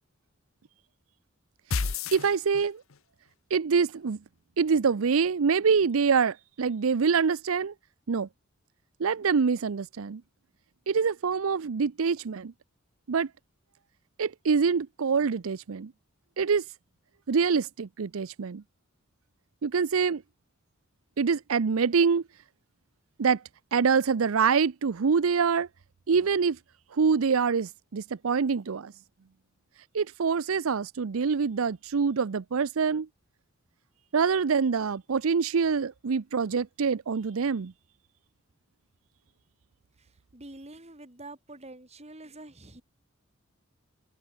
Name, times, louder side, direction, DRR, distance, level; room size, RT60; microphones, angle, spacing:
sound 1, 1.7-3.0, left 4 dB, 90° left, 0.9 m, -31 dB
voice 1, 1.7-2.8 3.5-4.2 4.6-7.7 8.1-8.3 9.0-10.2 10.9-12.5 13.1-13.3 14.2-15.9 16.4-16.6 17.3-18.6 19.6-20.2 21.2-22.2 23.2-23.4 23.7-25.7 26.1-26.6 26.9-28.9 29.9-33.1 34.1-37.7, right 5 dB, 90° right, 0.6 m, -25 dB
voice 2, 40.3-42.8, right 2 dB, 30° right, 3.2 m, -46 dB
head